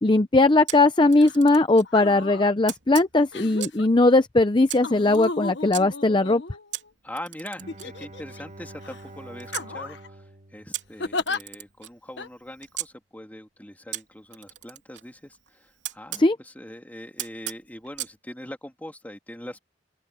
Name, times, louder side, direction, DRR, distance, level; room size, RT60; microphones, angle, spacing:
voice 1, 0.0-6.4 16.2-16.4, left 2 dB, 25° left, 0.7 m, -19 dB
Camera, 0.7-1.9 2.7-3.9 4.7-5.8 6.7-9.7 10.7-12.9 13.9-16.3 17.2-18.2, right 13 dB, 85° right, 3.5 m, -38 dB
sound 1, 1.2-1.4 1.8-2.5 3.3-3.9 4.8-6.9 7.7-8.4 8.8-9.0 9.5-10.1 11.0-11.4 12.2-12.3, left 3 dB, 80° left, 1.3 m, -34 dB
voice 2, 7.0-19.6, left 1 dB, 10° left, 2.7 m, -42 dB
Bowed string instrument, 7.6-11.5, right 2 dB, 45° right, 2.2 m, -46 dB
open air
head